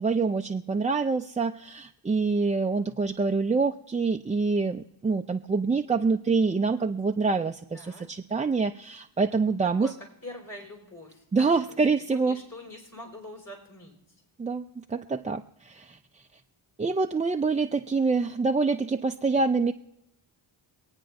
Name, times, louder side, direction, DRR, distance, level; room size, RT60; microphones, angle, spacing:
voice 1, 0.0-9.9 11.3-12.4 14.4-16.0 16.8-19.7, right 4 dB, 15° right, 5 dB, 0.4 m, -26 dB
voice 2, 7.7-8.1 9.4-9.5 9.8-9.9 10.2-11.8 12.1-13.9, left 1 dB, 40° left, 0 dB, 4.4 m, -44 dB
25.0 x 8.9 x 2.6 m, 0.82 s
cardioid pair, 65°, 48 cm